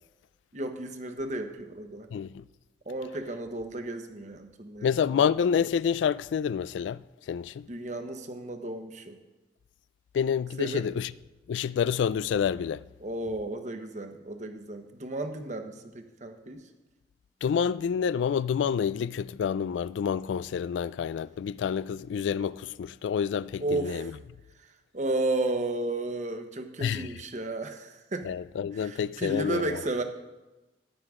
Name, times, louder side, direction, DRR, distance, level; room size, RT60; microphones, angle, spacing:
voice 1, 0.5-2.1 2.9-4.9 7.7-9.2 10.6-10.8 13.0-16.7 23.6-24.1 24.6-28.3 28.7-30.0, right 2 dB, 40° right, 1.0 m, -33 dB
voice 2, 2.1-2.4 4.8-7.0 7.3-7.7 10.1-11.1 11.5-12.8 17.4-24.1 26.8-27.1 28.3-29.8, left 7 dB, 85° left, 0.3 m, -28 dB
14.0 x 11.0 x 3.7 m
head